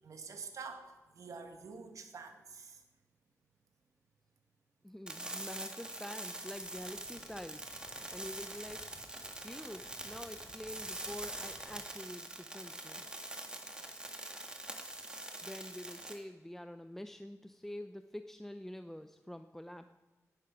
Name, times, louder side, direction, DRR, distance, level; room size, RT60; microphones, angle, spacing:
voice 1, 0.0-2.8, right 5 dB, 70° right, 5 dB, 1.9 m, -47 dB
voice 2, 4.8-7.6 8.1-8.9 9.4-13.1 15.4-19.9, left 1 dB, 5° left, 8 dB, 0.5 m, -47 dB
sound 1, 5.1-16.1, right 1 dB, 15° right, 1.9 m, -44 dB
sound 2, 6.4-11.8, left 1 dB, 25° left, 4.0 m, -61 dB
18.0 x 11.0 x 6.1 m, 1.2 s
wide cardioid pair, 150°, 6 cm